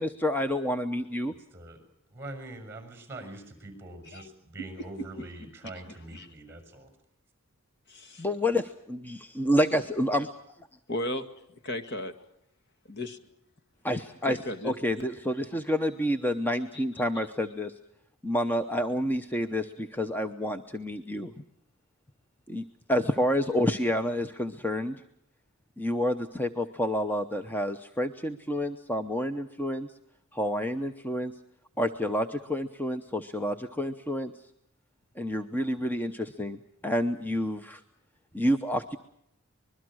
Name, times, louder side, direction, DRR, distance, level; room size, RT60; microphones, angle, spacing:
voice 1, 0.0-1.3 8.2-10.3 13.8-14.4 14.6-17.7 18.2-21.4 22.5-25.0 25.8-29.9 30.3-31.3 31.8-34.3 35.2-37.8 38.3-39.0, equal, 10° left, 7 dB, 0.8 m, -29 dB
voice 2, 1.5-1.8 2.1-6.9, right 1 dB, 10° right, 7 dB, 6.4 m, -43 dB
voice 3, 7.9-8.3 10.9-11.3 11.6-12.1 12.9-13.2 14.3-15.1 16.7-16.8, left 1 dB, 50° left, 8 dB, 2.0 m, -35 dB
25.5 x 21.5 x 6.3 m, 0.75 s
head